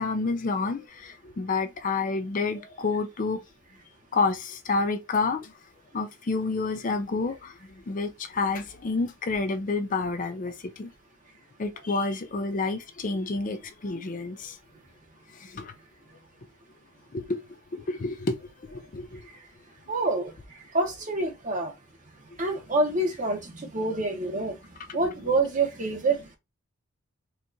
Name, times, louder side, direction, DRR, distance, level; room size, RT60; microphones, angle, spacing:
voice 1, 0.0-3.4 4.1-5.5 5.9-7.6 7.9-10.9 11.6-14.6 15.3-15.7 17.1-17.4 17.7-19.3, left 3 dB, 35° left, 0.4 m, -29 dB
voice 2, 19.9-20.3 20.7-21.7 22.4-24.6 24.9-26.4, right 2 dB, 35° right, 1.0 m, -27 dB
4.3 x 2.4 x 2.6 m
head